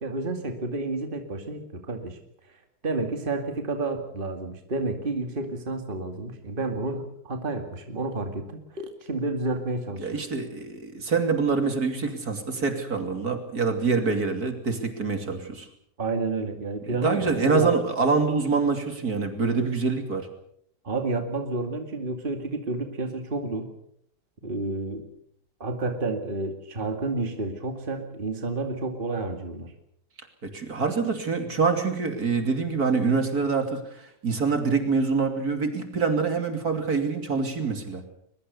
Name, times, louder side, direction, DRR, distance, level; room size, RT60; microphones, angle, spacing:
voice 1, 0.0-2.2 2.8-10.2 16.0-17.7 20.8-23.7 24.4-25.0 25.6-29.7, right 2 dB, 30° right, 5 dB, 2.4 m, -30 dB
voice 2, 10.0-15.7 16.9-20.3 30.4-38.0, right 4 dB, 60° right, 6 dB, 3.3 m, -25 dB
22.5 x 22.0 x 6.8 m, 0.70 s
omnidirectional pair, 1.8 m